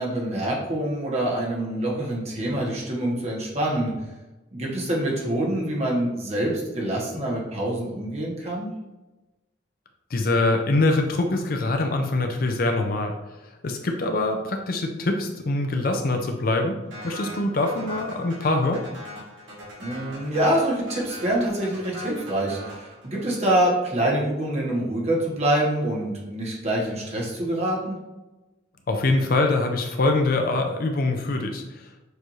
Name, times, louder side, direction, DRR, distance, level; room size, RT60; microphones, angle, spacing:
voice 1, 0.0-3.9 4.5-8.7 19.8-28.0, right 1 dB, 35° right, -3 dB, 1.2 m, -25 dB
voice 2, 10.1-13.1 13.6-16.8 17.0-18.8 28.9-31.6, left 2 dB, 50° left, 4 dB, 0.5 m, -23 dB
sound 1, 16.9-23.6, equal, 90° right, 1.5 m, -40 dB
6.5 x 2.6 x 3.1 m, 1.1 s
head